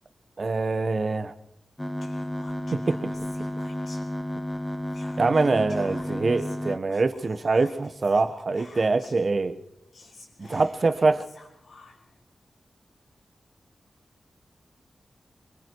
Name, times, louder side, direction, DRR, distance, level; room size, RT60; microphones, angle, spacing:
voice 1, 0.4-1.3 2.7-3.1 5.2-9.6 10.4-11.3, right 3 dB, 50° right, 11 dB, 1.3 m, -24 dB
sound 1, 1.8-6.8, left 1 dB, 10° left, 0.8 m, -32 dB
Whispering, 2.0-4.5 4.9-9.3 9.6-9.7 9.9-12.2, left 3 dB, 85° left, 4.7 m, -51 dB
24.0 x 23.0 x 4.8 m, 0.81 s
wide cardioid pair, 90°, 0 cm